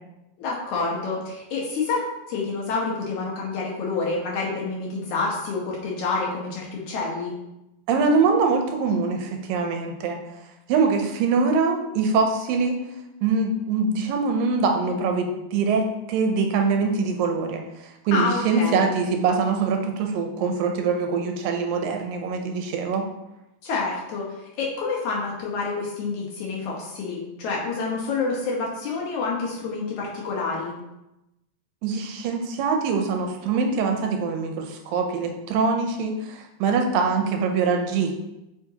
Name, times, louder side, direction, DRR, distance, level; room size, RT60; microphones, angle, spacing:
voice 1, 0.4-2.0 2.3-7.3 18.1-18.9 23.6-30.7, left 4 dB, 65° left, -3 dB, 2.1 m, -28 dB
voice 2, 7.9-10.2 10.7-12.8 13.2-23.1 31.8-38.1, right 4 dB, 80° right, 4 dB, 2.2 m, -23 dB
7.6 x 5.1 x 2.8 m, 0.93 s
omnidirectional pair, 4.2 m